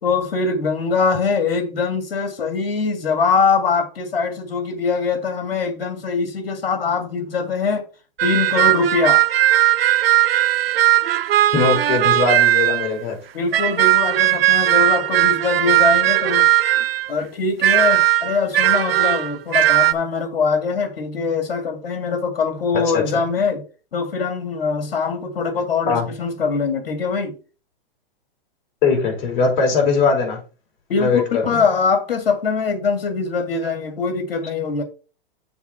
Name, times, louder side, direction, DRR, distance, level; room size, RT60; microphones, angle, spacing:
voice 1, 0.0-7.8 8.2-9.2 13.3-16.5 17.1-23.6 23.9-27.4 30.9-34.8, left 5 dB, 85° left, 2.4 m, -22 dB
sound 1, 8.2-12.9 13.5-17.1 17.6-19.9, right 13 dB, 85° right, 0.7 m, -17 dB
voice 2, 11.5-13.2 22.7-23.0 25.8-26.1 28.8-30.4 31.0-31.6, left 4 dB, 55° left, 4.7 m, -20 dB
7.0 x 4.6 x 5.9 m
hypercardioid pair, 135°, 29 cm